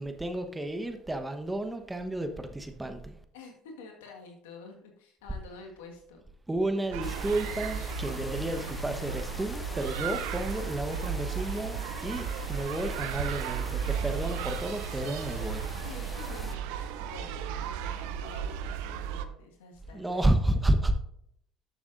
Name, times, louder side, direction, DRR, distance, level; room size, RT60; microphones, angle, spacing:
voice 1, 0.0-3.1 6.5-15.7 19.9-20.9, right 1 dB, 15° right, 7 dB, 1.1 m, -31 dB
voice 2, 3.3-6.2 15.8-20.4, left 4 dB, 85° left, 1 dB, 1.6 m, -48 dB
sound 1, 6.9-19.2, right 8 dB, 75° right, 0.5 m, -35 dB
sound 2, 7.0-16.6, left 2 dB, 20° left, 0.8 m, -42 dB
12.0 x 7.0 x 2.6 m, 0.71 s
hypercardioid pair, 65°, 0 cm